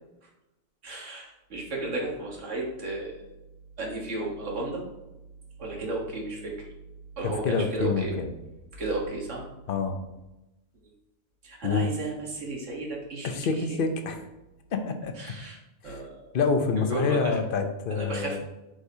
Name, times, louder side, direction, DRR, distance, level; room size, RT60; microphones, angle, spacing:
voice 1, 0.8-3.3 3.8-4.8 5.6-6.5 7.2-8.1 8.7-9.4 11.4-13.8 15.2-15.6 15.8-16.4 16.8-17.4 17.9-18.4, right 2 dB, 80° right, -1 dB, 1.7 m, -33 dB
voice 2, 7.2-8.3 9.7-10.0 11.6-11.9 13.2-14.2 14.7-15.1 15.8-16.0 16.3-18.4, left 4 dB, 55° left, 6 dB, 0.8 m, -27 dB
8.1 x 4.9 x 2.7 m, 0.99 s
omnidirectional pair, 1.3 m